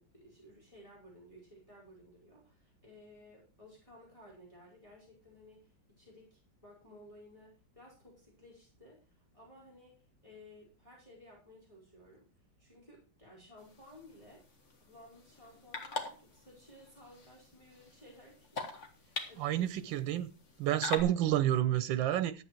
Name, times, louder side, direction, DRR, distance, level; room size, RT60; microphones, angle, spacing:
voice 1, 0.0-12.3 12.6-14.4 14.8-19.9, left 1 dB, 15° left, 5.0 m, -57 dB
sound 1, 13.6-21.0, left 3 dB, 40° left, 1.9 m, -44 dB
voice 2, 19.4-20.3 20.6-22.4, right 12 dB, 85° right, 1.5 m, -29 dB
11.5 x 8.5 x 4.5 m
omnidirectional pair, 2.0 m